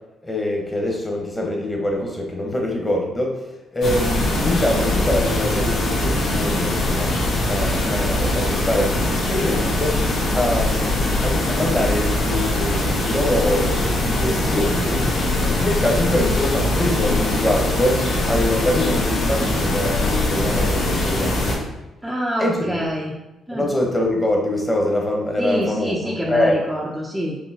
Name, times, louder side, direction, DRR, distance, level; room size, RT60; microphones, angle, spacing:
voice 1, 0.2-3.4 3.7-7.1 7.4-10.0 10.3-15.1 15.6-21.6 22.4-22.9 23.5-26.6, left 1 dB, 20° left, 0 dB, 1.2 m, -24 dB
sound 1, 3.8-21.6, left 1 dB, 70° left, 1.3 m, -22 dB
voice 2, 22.0-23.1 23.5-23.7 25.4-27.4, equal, 5° right, -3 dB, 0.6 m, -26 dB
5.4 x 3.2 x 2.9 m, 1.0 s
cardioid pair, 90°, 0 cm